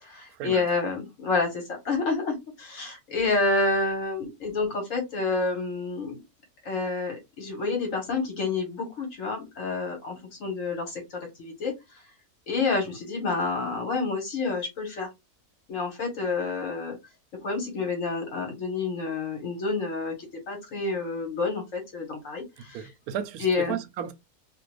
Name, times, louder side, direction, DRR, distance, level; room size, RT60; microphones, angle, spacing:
voice 1, 0.0-6.2 6.6-11.7 12.5-15.1 15.7-17.0 17.3-20.1 20.5-22.8 23.4-23.8, left 3 dB, 60° left, 1.5 m, -29 dB
voice 2, 22.7-24.1, right 9 dB, 80° right, 1.0 m, -34 dB
2.8 x 2.4 x 3.0 m
omnidirectional pair, 1.6 m